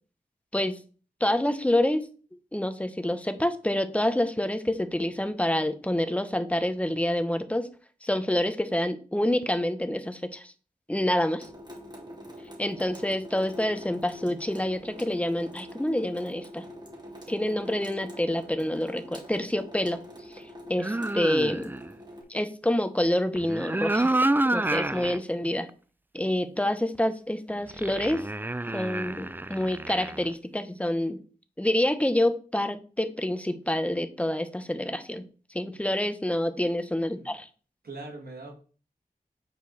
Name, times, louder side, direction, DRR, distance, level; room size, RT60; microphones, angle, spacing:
voice 1, 1.2-2.1 2.5-7.7 8.0-10.5 10.9-11.5 12.6-16.7 17.3-20.0 20.3-20.4 20.7-21.7 22.3-24.2 24.4-25.7 26.1-28.2 28.7-31.2 31.6-35.3 35.5-37.5, left 1 dB, 10° left, 10 dB, 1.0 m, -27 dB
Water tap faucet / Sink (filling or washing) / Drip, 11.4-22.2, equal, 30° right, 2.4 m, -45 dB
sound 1, 20.8-21.9 23.3-25.2 25.7-25.8 27.7-30.3, right 2 dB, 15° right, 0.4 m, -28 dB
voice 2, 37.0-37.4 37.8-38.6, right 2 dB, 80° right, 1 dB, 2.5 m, -42 dB
8.4 x 4.6 x 4.2 m, 0.38 s
wide cardioid pair, 60°, 15 cm